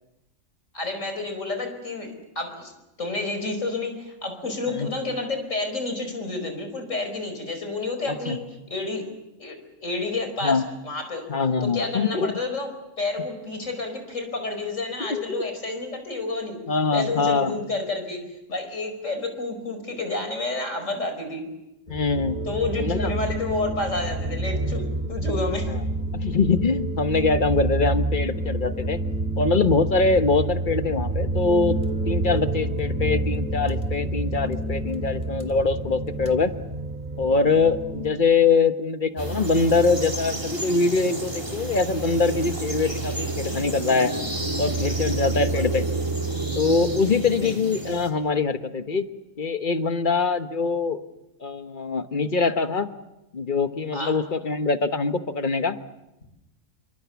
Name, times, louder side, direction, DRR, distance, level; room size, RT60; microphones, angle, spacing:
voice 1, 0.7-2.7 3.0-8.4 8.7-9.0 9.4-9.6 9.8-11.2 11.6-12.7 13.0-16.6 16.9-18.2 18.5-21.4 22.5-25.7 45.3-45.7 47.4-47.5 53.9-54.2, left 2 dB, 75° left, 6 dB, 5.3 m, -30 dB
voice 2, 8.1-8.4 10.4-10.7 11.3-12.3 15.1-15.4 16.7-17.6 21.9-22.4 22.8-23.1 25.7-25.8 26.1-29.0 29.4-31.8 32.0-36.5 37.2-44.1 44.6-45.8 46.5-49.0 49.4-51.0 51.4-52.9 53.3-55.8, left 4 dB, 40° left, 9 dB, 1.3 m, -23 dB
sound 1, 21.9-38.1, right 1 dB, 40° right, 2.5 m, -28 dB
sound 2, 39.2-48.1, right 2 dB, 20° right, 3.7 m, -29 dB
28.5 x 24.5 x 7.1 m, 0.95 s
omnidirectional pair, 1.3 m